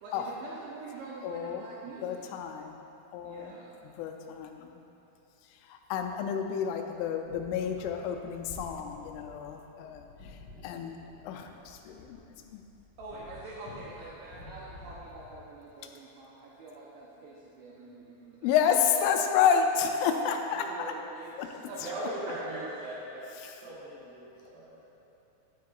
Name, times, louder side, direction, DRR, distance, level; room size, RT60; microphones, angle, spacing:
voice 1, 0.0-2.3 3.2-3.7 13.0-18.5 20.6-22.9, right 2 dB, 85° right, -5 dB, 2.2 m, -45 dB
voice 2, 1.2-1.6 2.0-2.8 3.1-3.5 3.8-4.8 5.5-11.0 11.2-12.2 12.5-12.6 18.4-20.9 21.4-21.9 23.4-23.6, left 7 dB, 85° left, 4 dB, 3.1 m, -30 dB
sound 1, 7.2-15.5, left 3 dB, 55° left, 3.3 m, -51 dB
voice 3, 21.8-23.2 23.6-24.9, right 1 dB, 70° right, -14 dB, 3.9 m, -39 dB
10.0 x 9.3 x 2.4 m, 2.9 s
omnidirectional pair, 5.5 m